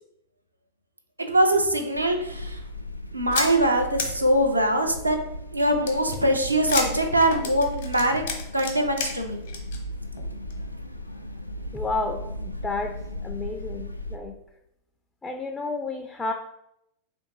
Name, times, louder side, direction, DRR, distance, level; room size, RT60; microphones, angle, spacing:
voice 1, 1.2-2.6 3.1-5.2 5.5-8.2 8.5-9.4, right 1 dB, 85° right, 4 dB, 0.6 m, -22 dB
sound 1, 1.9-14.2, left 1 dB, 85° left, 0.3 m, -37 dB
sound 2, 3.3-3.5 4.0-4.1 5.9-9.1 9.4-9.8 10.2-10.3 10.5-10.6, left 5 dB, 60° left, 0.9 m, -30 dB
voice 2, 11.7-14.3 15.2-16.3, left 3 dB, 15° left, 3 dB, 0.4 m, -31 dB
3.4 x 2.6 x 4.6 m, 0.81 s
figure-of-eight pair, 90°, 0 cm